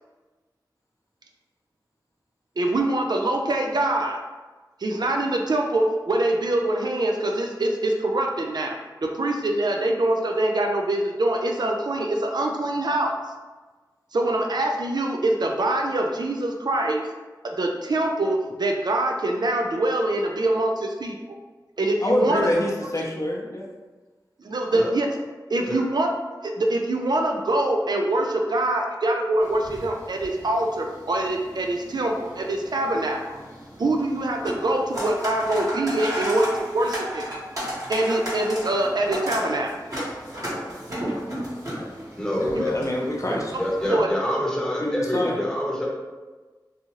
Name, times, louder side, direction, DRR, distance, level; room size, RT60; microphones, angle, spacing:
voice 1, 2.6-4.2 4.8-13.2 14.1-17.0 17.4-21.4 21.8-22.5 24.4-25.1 25.5-26.1 26.4-33.4 33.8-37.3 37.9-39.7 42.5-42.7 43.5-43.6 43.9-44.1, right 1 dB, 60° right, 2 dB, 0.3 m, -24 dB
voice 2, 22.0-23.7 41.7-41.9 42.4-43.5 43.8-44.0 44.8-45.3, left 1 dB, 40° left, -2 dB, 0.6 m, -26 dB
sound 1, 29.4-43.9, equal, 45° right, 1.4 m, -34 dB
voice 3, 42.2-42.9 43.6-45.9, left 1 dB, 10° left, -4 dB, 0.9 m, -26 dB
2.7 x 2.3 x 2.9 m, 1.3 s
cardioid pair, 40°, 8 cm